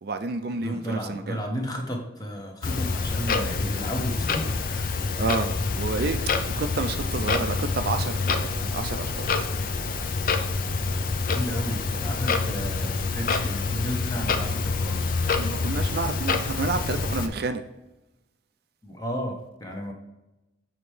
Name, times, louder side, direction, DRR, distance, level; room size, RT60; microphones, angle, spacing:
voice 1, 0.0-1.4 5.2-6.2 6.5-9.7 15.2-17.6, right 3 dB, 50° right, 0.4 m, -30 dB
voice 2, 0.6-5.1 6.0-6.1 11.2-15.2 18.8-19.9, equal, 20° left, 0.9 m, -33 dB
Clock, 2.6-17.3, left 4 dB, 45° left, 0.5 m, -27 dB
7.0 x 4.3 x 3.3 m
head